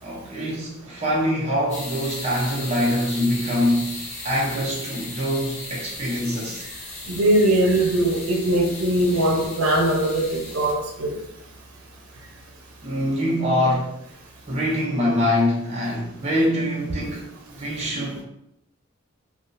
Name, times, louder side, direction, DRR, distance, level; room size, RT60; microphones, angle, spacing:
voice 1, 0.0-6.7 12.8-13.9 14.5-18.2, equal, 30° right, 0.7 m, -24 dB
sound 1, 1.7-10.7, left 2 dB, 35° left, 0.6 m, -37 dB
voice 2, 7.1-11.1, right 1 dB, 85° right, 0.7 m, -21 dB
3.5 x 2.4 x 2.6 m
head